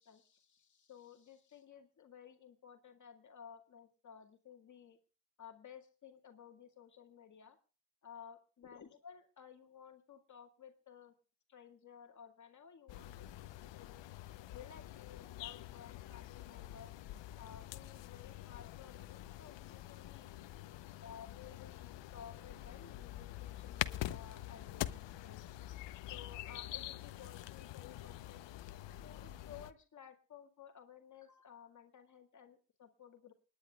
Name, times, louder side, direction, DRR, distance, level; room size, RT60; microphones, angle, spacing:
voice 1, 0.0-5.0 5.4-7.6 8.0-11.1 11.5-14.1 14.5-16.9 17.4-20.4 21.0-28.4 29.0-33.3, left 8 dB, 45° left, 3 dB, 2.1 m, -56 dB
sound 1, 12.9-29.7, left 14 dB, 85° left, 0.9 m, -46 dB
29.0 x 10.0 x 2.3 m, 0.37 s
cardioid pair, 145°, 42 cm